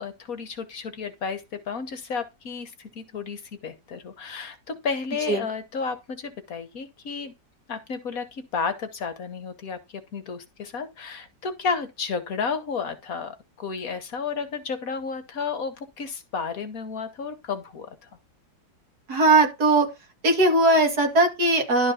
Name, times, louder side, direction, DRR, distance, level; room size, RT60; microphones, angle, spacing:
voice 1, 0.0-7.3 7.7-18.1, left 5 dB, 55° left, 1.4 m, -32 dB
voice 2, 19.1-19.9 20.2-21.9, right 2 dB, 60° right, 2.9 m, -19 dB
12.0 x 4.1 x 5.6 m
omnidirectional pair, 1.9 m